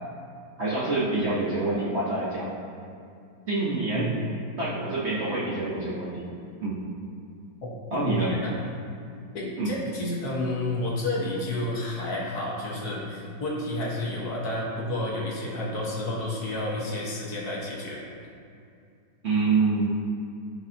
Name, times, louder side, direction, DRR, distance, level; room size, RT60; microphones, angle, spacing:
voice 1, 0.6-2.5 3.5-4.1 4.6-6.2 6.6-6.8 7.9-8.3 9.6-9.7 19.2-19.9, right 3 dB, 45° right, -6 dB, 1.0 m, -26 dB
voice 2, 8.0-8.5 9.3-18.0, left 1 dB, 60° left, -4 dB, 1.8 m, -30 dB
12.5 x 5.2 x 2.8 m, 2.5 s
omnidirectional pair, 2.0 m